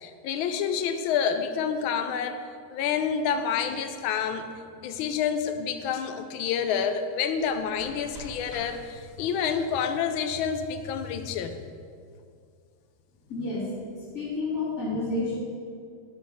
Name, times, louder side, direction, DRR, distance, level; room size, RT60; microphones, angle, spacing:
voice 1, 0.0-2.4 2.7-4.5 4.8-11.6, left 7 dB, 75° left, 8 dB, 1.4 m, -28 dB
sound 1, 7.3-9.4, equal, 30° right, 2.1 m, -47 dB
voice 2, 13.3-13.7 14.0-15.4, left 3 dB, 45° left, -14 dB, 3.1 m, -30 dB
11.5 x 4.3 x 5.7 m, 2.2 s
omnidirectional pair, 2.3 m